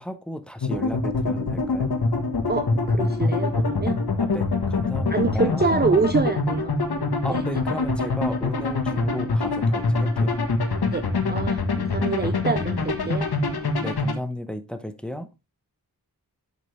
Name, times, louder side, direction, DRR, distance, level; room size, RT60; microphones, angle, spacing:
voice 1, 0.0-1.9 4.2-5.7 7.2-10.4 13.8-15.3, left 1 dB, 5° left, 1.0 m, -34 dB
sound 1, 0.6-14.1, left 3 dB, 80° left, 1.4 m, -24 dB
voice 2, 2.5-4.0 5.1-6.7 7.3-7.4 10.9-13.3, right 4 dB, 25° right, 0.6 m, -26 dB
8.1 x 6.5 x 3.3 m
wide cardioid pair, 85°, 37 cm